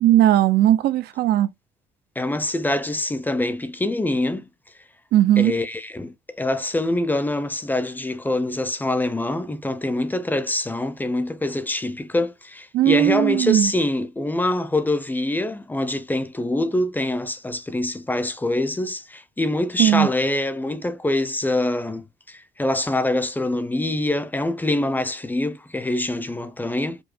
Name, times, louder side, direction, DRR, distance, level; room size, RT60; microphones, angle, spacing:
voice 1, 0.0-1.5 5.1-5.6 12.7-13.7 19.8-20.1, right 13 dB, 75° right, 0.7 m, -17 dB
voice 2, 2.2-4.5 5.4-27.0, left 1 dB, 10° left, 0.7 m, -25 dB
5.4 x 2.0 x 4.3 m
cardioid pair, 110°, 17 cm